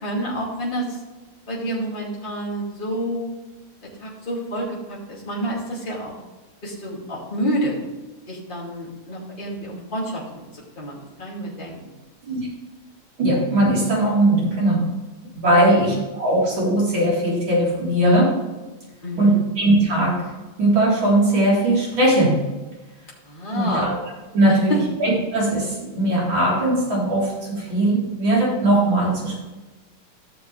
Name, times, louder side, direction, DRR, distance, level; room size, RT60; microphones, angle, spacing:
voice 1, 0.0-1.0 1.5-3.2 4.0-6.2 6.6-7.8 8.3-11.8 15.4-15.7 19.0-19.5 23.3-23.9 24.5-24.8, right 1 dB, 25° left, -5 dB, 2.7 m, -28 dB
voice 2, 13.2-14.9 15.4-18.3 19.2-20.2 20.6-22.4 23.5-23.9 24.3-29.4, right 1 dB, 65° right, -6 dB, 4.7 m, -19 dB
14.5 x 6.9 x 3.3 m, 1.1 s
omnidirectional pair, 2.3 m